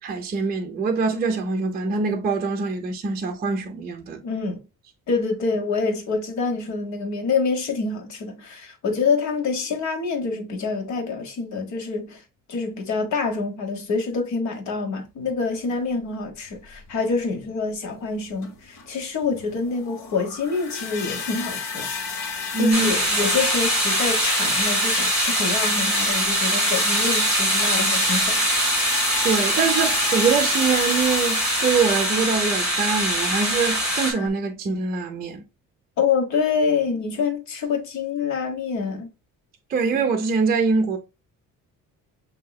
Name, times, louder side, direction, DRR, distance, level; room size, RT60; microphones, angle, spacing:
voice 1, 0.0-4.2 22.5-22.9 29.2-35.4 39.7-41.0, right 4 dB, 30° right, 0.6 m, -23 dB
voice 2, 4.2-4.7 5.1-12.2 12.5-21.9 22.5-28.4 36.0-39.1, left 4 dB, 60° left, 1.3 m, -26 dB
sound 1, 16.5-16.6 17.3-17.4 18.3-34.3, left 5 dB, 85° left, 1.5 m, -32 dB
sound 2, 22.7-34.1, right 1 dB, ahead, 2.2 m, -23 dB
6.7 x 2.8 x 2.3 m
cardioid pair, 165°, 32 cm